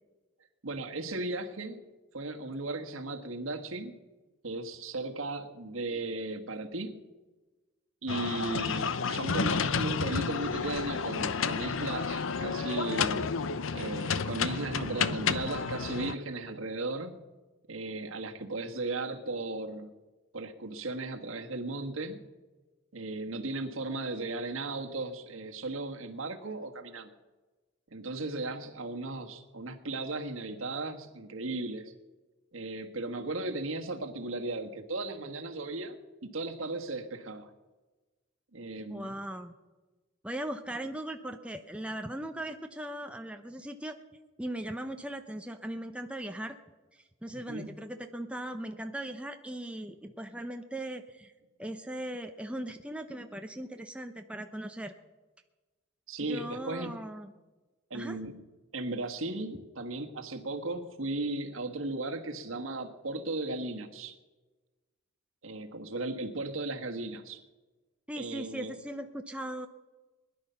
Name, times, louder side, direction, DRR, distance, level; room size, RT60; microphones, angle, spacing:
voice 1, 0.6-1.8 2.1-4.0 4.4-7.0 8.0-13.3 13.7-17.2 17.7-19.9 20.3-22.3 22.9-27.1 27.9-31.9 32.5-37.5 38.5-39.2 47.3-47.8 56.1-57.0 57.9-58.5 58.7-64.1 65.4-67.4 68.2-68.8, right 2 dB, 75° right, 5 dB, 1.5 m, -36 dB
sound 1, 8.1-16.2, left 5 dB, 70° left, 0.6 m, -31 dB
voice 2, 38.9-39.5 40.2-44.0 44.4-46.6 47.2-51.3 51.6-54.9 56.3-57.3 57.9-58.2 68.1-69.7, right 1 dB, 5° right, 5 dB, 0.7 m, -39 dB
21.0 x 11.0 x 5.7 m, 1.2 s
head